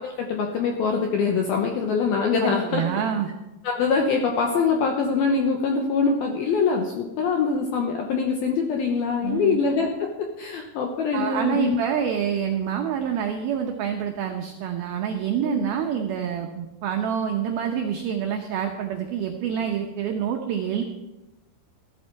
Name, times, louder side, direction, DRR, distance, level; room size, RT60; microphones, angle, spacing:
voice 1, 0.0-2.9 3.6-11.8 15.4-15.6, left 5 dB, 75° left, 2 dB, 2.2 m, -24 dB
voice 2, 2.4-3.3 9.2-9.6 11.1-20.8, right 8 dB, 90° right, 3 dB, 2.1 m, -27 dB
15.5 x 12.0 x 4.6 m, 1.0 s
omnidirectional pair, 5.7 m